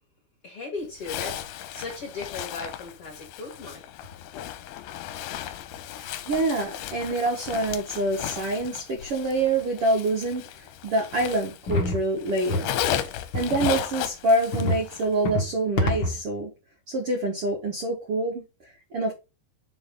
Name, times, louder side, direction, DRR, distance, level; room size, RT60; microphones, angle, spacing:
voice 1, 0.4-3.8, left 3 dB, 50° left, 1.9 m, -37 dB
Zipper (clothing), 1.0-11.9 12.2-15.1, left 11 dB, 80° left, 2.7 m, -35 dB
voice 2, 5.9-12.7 13.3-16.5 16.9-18.4 18.9-19.1, right 2 dB, 90° right, 1.2 m, -26 dB
sound 1, 11.7-12.0 12.5-12.7 13.3-13.8 14.5-14.8 15.2-15.5 15.8-16.2, left 1 dB, 65° left, 1.2 m, -26 dB
6.9 x 4.0 x 5.2 m
omnidirectional pair, 5.0 m